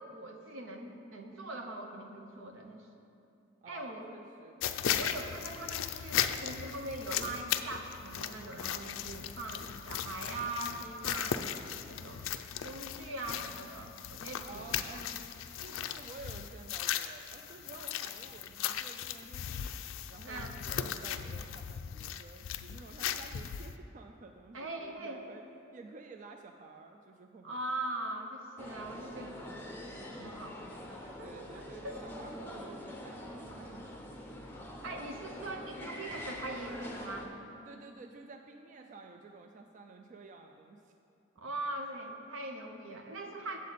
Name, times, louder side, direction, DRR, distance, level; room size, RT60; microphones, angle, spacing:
voice 1, 0.0-2.9 3.7-4.1 5.0-11.5 11.9-15.2 20.2-20.6 24.5-25.2 27.4-29.7 30.2-32.0 34.8-37.3 41.4-43.6, right 2 dB, 80° right, 3 dB, 0.8 m, -41 dB
voice 2, 3.6-4.6 14.4-15.0 15.6-19.7 20.1-25.4 25.7-27.6 31.2-34.1 37.6-40.9, right 3 dB, 40° right, 4 dB, 0.3 m, -51 dB
sound 1, 4.6-23.8, left 9 dB, 80° left, 0.3 m, -37 dB
sound 2, 28.6-37.3, left 1 dB, 10° left, 0.7 m, -44 dB
8.2 x 7.3 x 4.1 m, 2.6 s
head